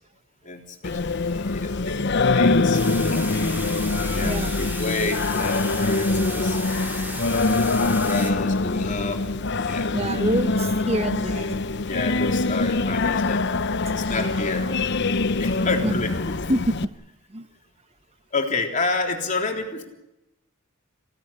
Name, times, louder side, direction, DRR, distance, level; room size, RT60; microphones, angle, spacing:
voice 1, 0.4-3.3 3.7-3.9 4.1-6.6 7.0-9.2 9.6-9.9 11.9-13.5 13.9-14.7 15.4-16.3 18.3-19.9, left 3 dB, 40° left, 2 dB, 3.6 m, -30 dB
Singing, 0.8-16.8, left 3 dB, 55° left, 0.8 m, -24 dB
sound 1, 2.7-8.3, right 1 dB, 10° right, 3.8 m, -35 dB
voice 2, 9.9-11.6 15.8-15.9 16.5-16.6 17.3-17.5, right 1 dB, 30° right, 12 dB, 1.0 m, -26 dB
27.0 x 17.0 x 9.9 m, 0.92 s
head